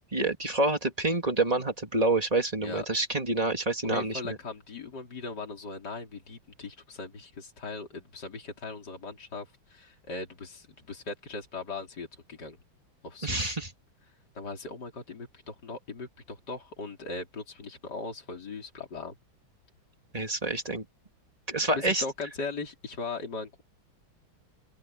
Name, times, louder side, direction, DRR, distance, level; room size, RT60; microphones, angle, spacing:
voice 1, 0.1-4.4 13.2-13.7 20.1-20.8 21.5-22.0, right 2 dB, 20° right, 2.6 m, -27 dB
voice 2, 3.8-12.6 13.0-13.6 14.3-19.1 21.7-23.6, left 3 dB, 55° left, 4.2 m, -39 dB
open air
omnidirectional pair, 2.2 m